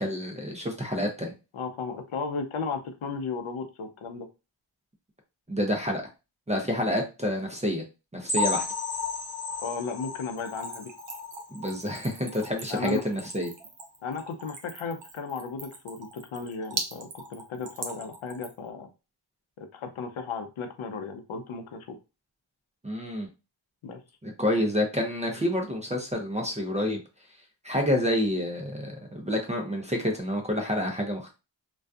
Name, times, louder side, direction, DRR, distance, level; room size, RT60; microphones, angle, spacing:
voice 1, 0.0-1.3 5.5-6.0 6.5-7.8 8.1-8.6 11.5-13.5 22.8-23.3 24.2-27.0 27.6-31.3, left 1 dB, 15° right, 2 dB, 0.4 m, -28 dB
voice 2, 1.5-4.3 9.6-10.9 12.7-13.0 14.0-18.9 19.6-22.0 23.8-24.0, left 5 dB, 75° left, 6 dB, 0.6 m, -35 dB
sound 1, 8.3-11.9 12.3-12.5 12.8-12.9 13.4-13.5, left 4 dB, 40° left, 0.7 m, -33 dB
Splash splatter / Trickle dribble, 10.4-18.7, right 3 dB, 60° right, 0.7 m, -40 dB
2.5 x 2.3 x 2.3 m, 0.29 s
wide cardioid pair, 130°, 49 cm